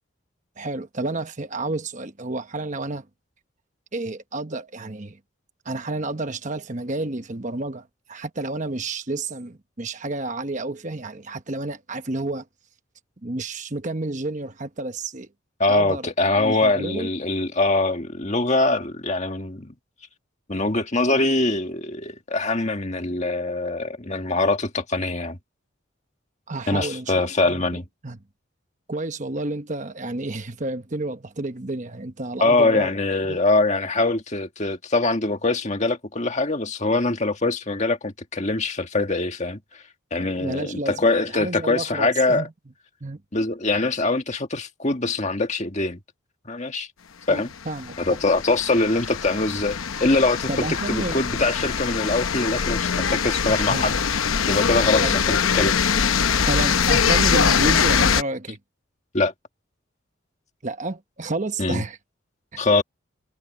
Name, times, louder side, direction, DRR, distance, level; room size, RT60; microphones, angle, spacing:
voice 1, 0.6-3.1 3.9-5.2 5.6-12.5 13.2-15.3 15.7-16.1 16.4-17.1 26.5-28.2 28.9-32.9 33.3-33.4 40.4-42.5 43.0-43.2 47.3-48.2 50.5-51.2 53.5-53.9 55.0-55.2 56.5-58.6 60.6-62.0 62.5-62.6, right 2 dB, 35° right, 1.1 m, -30 dB
voice 2, 15.6-19.8 20.5-25.4 26.7-27.9 32.4-39.8 40.1-42.5 43.3-46.0 46.5-46.9 47.3-47.5 48.0-50.5 50.9-55.7 59.1-59.3 61.6-61.8 62.6-62.8, left 2 dB, 35° left, 1.9 m, -23 dB
sound 1, 47.5-58.2, left 6 dB, 85° left, 0.8 m, -22 dB
head